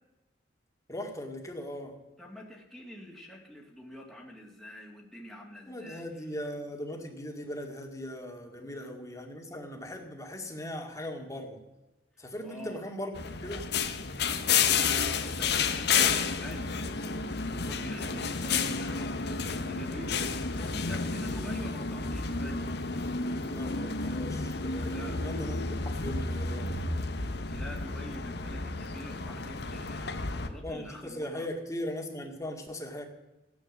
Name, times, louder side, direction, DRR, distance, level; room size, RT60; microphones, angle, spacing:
voice 1, 0.9-2.0 5.7-11.6 12.2-13.1 13.4-13.7 23.5-26.8 30.6-33.0, left 1 dB, 15° left, 3 dB, 2.1 m, -39 dB
voice 2, 2.2-6.1 12.4-12.8 14.6-16.8 17.5-20.2 20.5-22.6 24.9-25.2 27.5-31.5, left 1 dB, ahead, -2 dB, 2.3 m, -45 dB
sound 1, 13.1-30.5, left 5 dB, 60° left, 1.1 m, -31 dB
16.0 x 9.5 x 7.3 m, 1.0 s
head